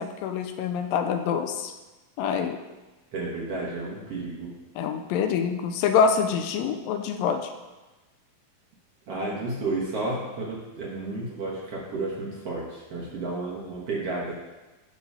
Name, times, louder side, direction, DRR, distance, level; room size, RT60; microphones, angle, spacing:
voice 1, 0.0-1.7 2.2-2.6 4.8-7.5, left 6 dB, 85° left, 7 dB, 2.2 m, -25 dB
voice 2, 3.1-4.5 9.1-14.3, right 2 dB, 60° right, -4 dB, 1.6 m, -32 dB
11.5 x 3.8 x 5.5 m, 1.1 s
omnidirectional pair, 4.1 m